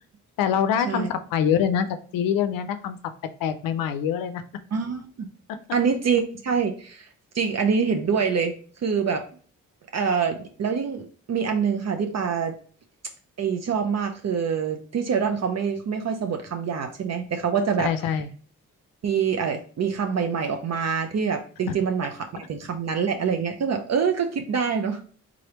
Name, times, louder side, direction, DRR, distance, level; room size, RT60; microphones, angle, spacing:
voice 1, 0.4-1.9 2.1-3.0 3.4-4.4 17.8-18.3 21.7-21.8, left 8 dB, 90° left, 10 dB, 0.5 m, -24 dB
voice 2, 4.7-5.3 5.7-7.1 7.3-8.5 8.8-9.3 9.9-12.6 13.4-17.9 19.0-25.0, right 6 dB, 50° right, 5 dB, 0.6 m, -25 dB
3.7 x 3.2 x 2.9 m, 0.43 s
cardioid pair, 60°, 33 cm